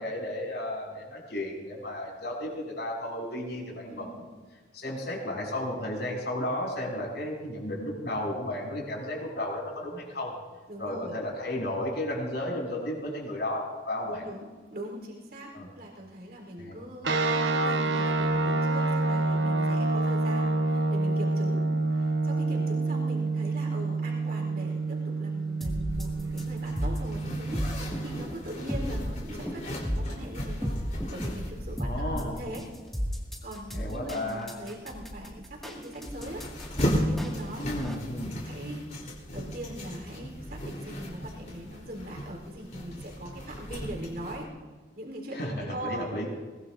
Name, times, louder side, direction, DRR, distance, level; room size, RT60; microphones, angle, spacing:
voice 1, 0.0-4.1 4.7-10.3 10.8-14.2 15.5-15.7 16.6-16.8 31.8-32.4 33.7-34.5 37.6-38.3 45.3-46.3, left 1 dB, 65° left, -2 dB, 6.0 m, -33 dB
voice 2, 10.7-11.1 14.0-30.8 31.1-32.7 33.4-37.7 38.4-38.9 39.3-44.5 45.0-46.1, right 1 dB, 55° right, 0 dB, 4.0 m, -41 dB
sound 1, 17.0-28.2, right 3 dB, 75° right, 1.2 m, -28 dB
sound 2, 25.6-37.9, equal, ahead, 2.1 m, -34 dB
Zipper (clothing), 25.9-44.4, equal, 45° left, 3.8 m, -37 dB
22.5 x 20.5 x 2.7 m, 1.4 s
head